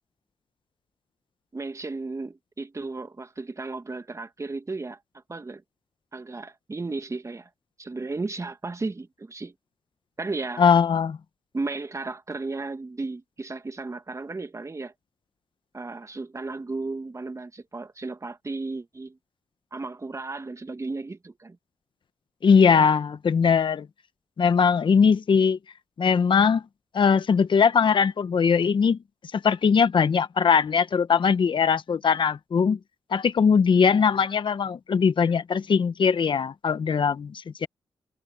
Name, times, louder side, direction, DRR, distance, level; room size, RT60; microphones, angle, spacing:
voice 1, 1.5-5.0 5.3-5.6 6.1-7.5 7.8-9.5 10.2-10.6 11.5-14.9 15.7-19.2 19.7-21.6, right 3 dB, 30° right, 1.9 m, -34 dB
voice 2, 10.6-11.2 22.4-23.9 24.4-25.6 26.0-26.6 26.9-29.0 29.3-32.8 33.1-37.7, left 6 dB, 55° left, 1.3 m, -20 dB
supercardioid pair, 50°, 10 cm